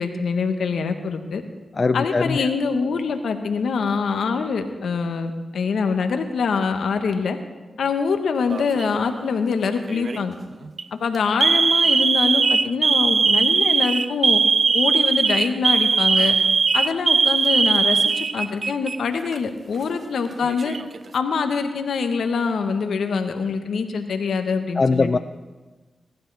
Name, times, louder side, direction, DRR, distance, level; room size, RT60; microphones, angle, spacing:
voice 1, 0.0-1.4 1.9-7.4 7.8-10.3 10.9-14.4 14.7-16.4 16.7-20.8 21.1-25.2, left 5 dB, 80° left, 7 dB, 1.1 m, -24 dB
voice 2, 1.7-2.5 24.8-25.2, left 4 dB, 50° left, 11 dB, 0.4 m, -21 dB
Alarm, 8.5-9.0 9.9-10.2 10.6-10.8 11.4-19.0 19.3-19.4 20.3-21.0, right 5 dB, 65° right, 0.4 m, -19 dB
20.5 x 12.0 x 3.4 m, 1.3 s
supercardioid pair, 40°, 0 cm